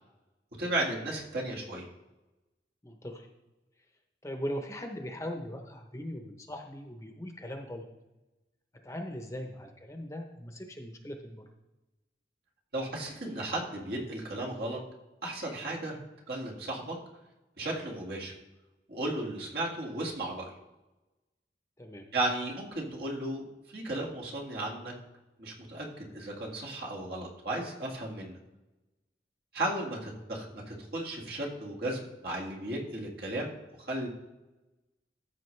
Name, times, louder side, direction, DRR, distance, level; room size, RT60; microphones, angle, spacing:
voice 1, 0.6-1.9 12.7-14.8 15.2-16.0 16.3-17.0 17.6-18.3 18.9-20.5 22.1-24.9 25.4-28.4 29.5-33.5 33.8-34.1, right 1 dB, 60° right, -2 dB, 1.9 m, -35 dB
voice 2, 2.8-3.3 4.2-7.9 8.8-11.4 21.8-22.1, equal, 15° left, 3 dB, 0.9 m, -40 dB
14.0 x 6.2 x 3.3 m, 1.0 s
head